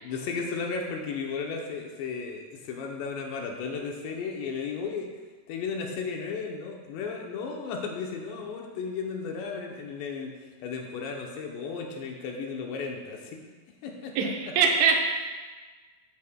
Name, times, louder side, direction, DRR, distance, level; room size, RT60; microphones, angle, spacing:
voice 1, 0.0-5.1 5.5-13.4 13.8-14.6, left 5 dB, 75° left, 1 dB, 2.9 m, -34 dB
voice 2, 14.2-15.1, right 5 dB, 85° right, 2 dB, 3.3 m, -23 dB
14.0 x 8.5 x 2.3 m, 1.4 s
omnidirectional pair, 5.3 m